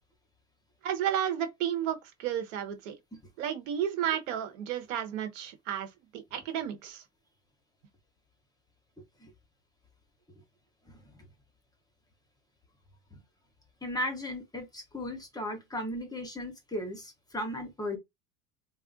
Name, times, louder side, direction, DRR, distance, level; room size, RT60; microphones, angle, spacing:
voice 1, 0.8-3.0 3.4-7.0, right 10 dB, 85° right, 0.9 m, -32 dB
voice 2, 10.9-11.3 13.1-13.2 13.8-18.0, left 1 dB, 10° left, 0.7 m, -36 dB
2.4 x 2.0 x 3.7 m
supercardioid pair, 130°, 37 cm